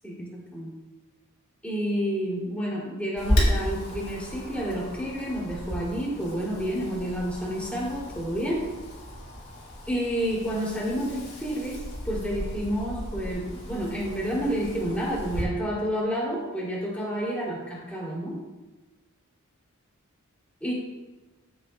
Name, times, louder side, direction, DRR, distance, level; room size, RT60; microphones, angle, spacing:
voice 1, 0.0-0.7 1.6-8.6 9.9-18.4 20.6-20.7, equal, 5° left, -5 dB, 2.7 m, -30 dB
Wind, 3.2-15.4, equal, 50° left, 3.3 m, -33 dB
13.0 x 8.6 x 2.2 m, 1.2 s
head